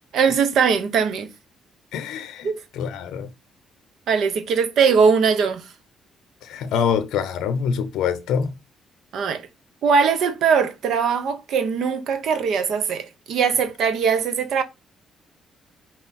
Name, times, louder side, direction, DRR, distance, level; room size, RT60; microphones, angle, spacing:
voice 1, 0.1-1.3 2.4-2.6 4.1-5.6 9.1-9.5 9.8-14.6, right 6 dB, 75° right, 0.9 m, -20 dB
voice 2, 1.9-3.3 6.4-8.5, left 7 dB, 85° left, 0.5 m, -25 dB
5.6 x 2.0 x 4.1 m
cardioid pair, 90°, 0 cm